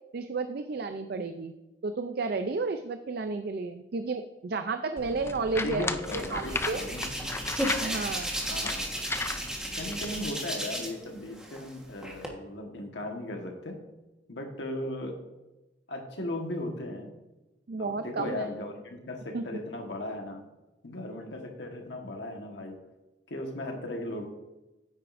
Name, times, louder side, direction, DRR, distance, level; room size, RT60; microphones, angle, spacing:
voice 1, 0.1-1.5 1.8-5.9 6.1-6.8 7.8-8.3 17.7-18.5 19.3-19.4, right 3 dB, 55° right, 9 dB, 0.4 m, -32 dB
sound 1, 5.0-10.3, left 3 dB, 15° left, 0.3 m, -36 dB
voice 2, 5.6-7.3 7.8-8.0 8.5-8.8 9.7-13.8 14.3-15.2 15.9-17.1 17.8-20.5 20.8-22.8 23.3-24.3, left 1 dB, 75° left, 2 dB, 1.4 m, -37 dB
Hands, 6.0-11.0 11.4-12.3, equal, 5° right, 1.3 m, -34 dB
9.8 x 9.0 x 2.6 m, 1.0 s
head